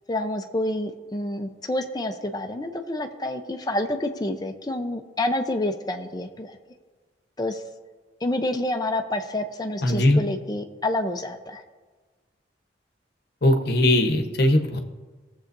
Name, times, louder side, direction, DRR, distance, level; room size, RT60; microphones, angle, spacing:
voice 1, 0.1-6.6 7.4-7.6 8.2-11.6, left 1 dB, 20° left, 5 dB, 0.7 m, -28 dB
voice 2, 9.8-10.2 13.4-14.8, left 1 dB, 60° left, 5 dB, 1.0 m, -19 dB
18.0 x 7.4 x 2.6 m, 1.4 s
head